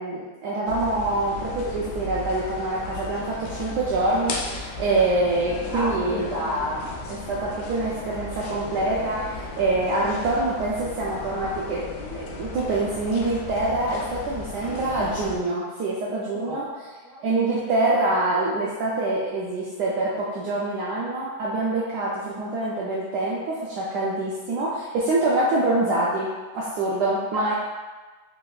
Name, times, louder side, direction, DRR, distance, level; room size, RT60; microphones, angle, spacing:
voice 1, 0.0-6.3 7.3-11.9 12.1-16.6 17.2-27.5, right 2 dB, 75° right, -6 dB, 1.1 m, -25 dB
sound 1, 0.7-15.4, left 2 dB, 75° left, 0.9 m, -35 dB
voice 2, 5.7-6.8 16.4-16.6 17.0-17.2 27.3-27.5, equal, 20° right, -8 dB, 1.5 m, -29 dB
3.6 x 3.3 x 2.3 m, 1.3 s
omnidirectional pair, 2.0 m